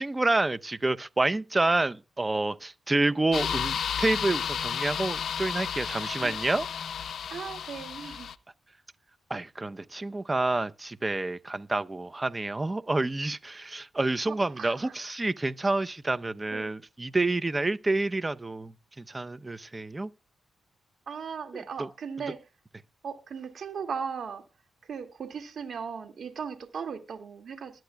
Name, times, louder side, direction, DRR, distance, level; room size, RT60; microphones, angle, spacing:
voice 1, 0.0-6.7 9.3-20.1 21.5-21.9, right 2 dB, 25° right, 0.8 m, -28 dB
sound 1, 3.3-8.3, left 8 dB, 70° left, 0.5 m, -32 dB
voice 2, 7.3-8.3 14.3-14.9 16.5-16.7 21.1-22.4 23.0-24.4 24.8-27.8, right 6 dB, 65° right, 2.3 m, -37 dB
21.0 x 9.1 x 2.4 m
supercardioid pair, 50°, 0 cm